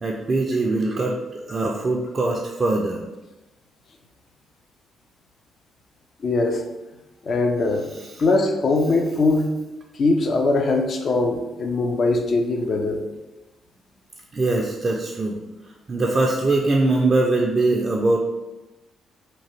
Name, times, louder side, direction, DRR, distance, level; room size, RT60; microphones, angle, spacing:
voice 1, 0.0-1.2 1.5-3.0 8.0-8.1 14.3-15.4 15.9-18.2, right 2 dB, 40° right, -1 dB, 0.4 m, -22 dB
voice 2, 6.2-6.6 7.3-7.9 8.2-9.5 10.0-13.0, left 3 dB, 50° left, 3 dB, 0.4 m, -21 dB
2.9 x 2.2 x 3.1 m, 1.0 s
hypercardioid pair, 45°, 0 cm